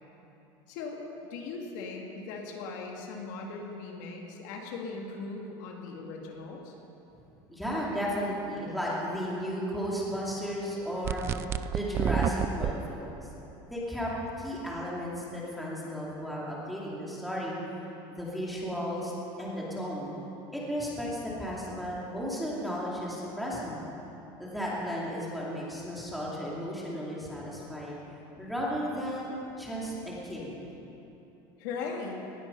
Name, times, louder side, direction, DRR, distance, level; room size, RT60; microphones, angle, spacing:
voice 1, 0.7-1.0 1.3-6.7 31.6-32.2, left 4 dB, 70° left, 0 dB, 2.4 m, -39 dB
voice 2, 7.5-11.2 11.7-13.3 13.7-17.7 18.1-19.1 19.4-20.1 20.5-23.8 24.4-28.0 28.4-30.5, equal, ahead, -6 dB, 2.5 m, -34 dB
sound 1, 11.0-12.7, right 9 dB, 25° right, 0.3 m, -29 dB
19.0 x 12.5 x 5.5 m, 3.0 s
cardioid pair, 175°, 11 cm